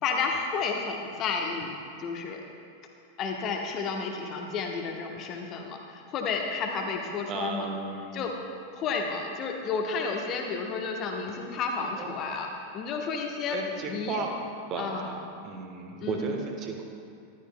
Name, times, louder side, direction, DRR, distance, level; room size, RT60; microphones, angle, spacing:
voice 1, 0.0-2.4 3.2-7.7 8.1-8.3 8.7-12.5 12.7-13.6 13.9-14.2 14.8-15.1 16.0-16.4, left 5 dB, 35° left, 1 dB, 1.0 m, -31 dB
voice 2, 7.3-8.3 12.0-12.1 13.5-16.8, right 4 dB, 35° right, 2 dB, 1.3 m, -35 dB
13.5 x 12.0 x 2.2 m, 2.4 s
figure-of-eight pair, 90°, 0 cm